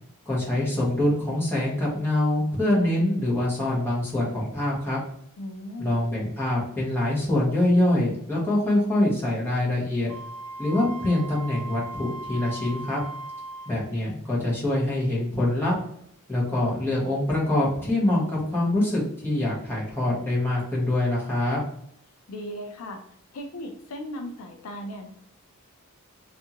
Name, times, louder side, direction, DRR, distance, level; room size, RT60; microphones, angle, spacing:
voice 1, 0.3-5.0 5.8-10.1 10.6-13.0 13.7-15.7 16.3-21.6, left 1 dB, 10° left, -7 dB, 0.9 m, -24 dB
voice 2, 5.4-6.0 22.3-23.0 23.3-25.1, equal, 70° left, 4 dB, 0.4 m, -37 dB
Wind instrument woodwind instrument, 10.1-13.8, right 2 dB, 80° right, 0.5 m, -38 dB
2.6 x 2.4 x 2.8 m, 0.69 s
head